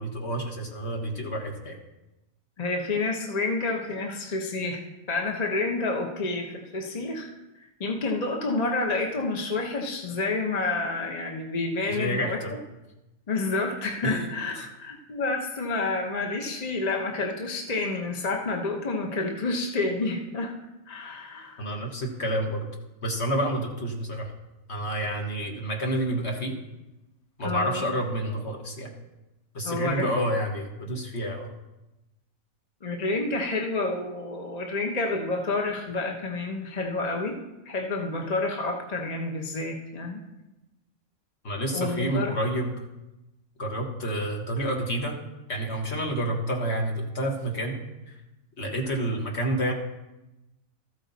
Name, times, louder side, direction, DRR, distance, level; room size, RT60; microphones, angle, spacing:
voice 1, 0.0-1.8 11.9-12.6 14.0-14.3 14.6-14.7 21.6-22.7 23.0-24.3 24.7-26.6 27.4-28.9 29.5-31.5 41.4-42.7 43.6-45.2 45.5-47.8 48.1-48.2 48.6-49.7, right 1 dB, 50° left, 1 dB, 1.7 m, -29 dB
voice 2, 2.6-4.8 5.1-7.3 7.8-12.4 13.3-20.5 20.9-21.6 27.4-27.9 29.6-30.1 32.8-37.4 37.6-40.2 41.7-42.3, left 3 dB, 30° left, 2 dB, 1.0 m, -29 dB
13.5 x 8.1 x 4.1 m, 1.0 s
omnidirectional pair, 1.4 m